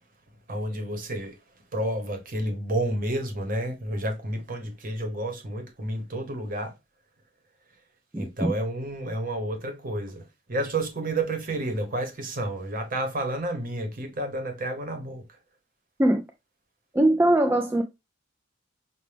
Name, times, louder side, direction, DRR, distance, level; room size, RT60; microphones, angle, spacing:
voice 1, 0.5-1.4 1.7-6.7 8.2-15.3, right 1 dB, 45° right, 1.0 m, -30 dB
voice 2, 8.1-8.5 16.0-16.2 16.9-17.8, right 1 dB, 10° right, 0.3 m, -21 dB
5.7 x 2.3 x 3.3 m
head